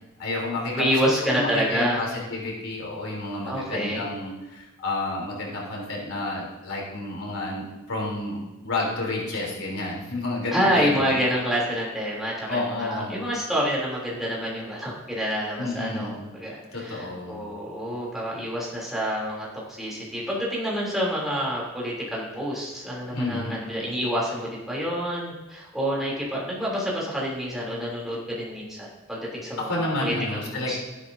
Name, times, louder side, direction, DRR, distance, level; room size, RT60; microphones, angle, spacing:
voice 1, 0.2-11.1 12.5-13.2 15.6-16.3 16.7-17.5 23.1-23.6 29.6-30.7, left 2 dB, 90° left, -2 dB, 3.4 m, -30 dB
voice 2, 0.7-2.0 3.4-4.0 10.5-30.4 30.7-30.8, equal, ahead, -5 dB, 3.0 m, -28 dB
13.0 x 11.0 x 2.7 m, 1.1 s
head